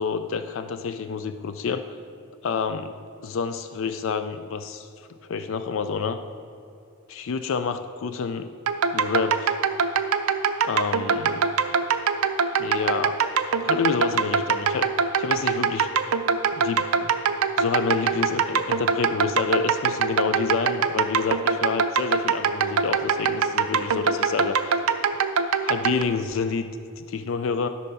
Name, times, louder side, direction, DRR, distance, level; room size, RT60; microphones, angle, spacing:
voice 1, 0.0-1.8 2.4-2.9 3.2-4.9 5.2-6.2 7.1-8.5 8.9-9.6 10.6-11.5 12.6-13.2 13.6-14.9 15.2-15.9 16.6-17.1 17.6-24.8 25.6-26.7 27.0-27.7, left 5 dB, 60° left, 10 dB, 0.4 m, -28 dB
sound 1, 8.7-26.0, right 6 dB, 80° right, 0.5 m, -23 dB
13.5 x 5.7 x 4.0 m, 2.5 s
head